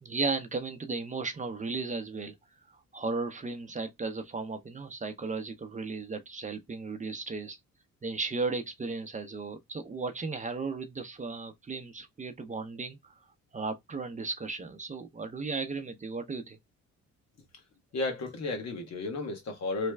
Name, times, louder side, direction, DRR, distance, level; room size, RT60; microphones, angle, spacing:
voice 1, 0.0-2.3 2.7-7.6 8.0-13.1 13.5-16.6, right 4 dB, 25° right, 0.6 m, -35 dB
voice 2, 17.9-19.9, left 3 dB, 60° left, 1.3 m, -33 dB
3.2 x 2.2 x 3.3 m
cardioid pair, 90°, 30 cm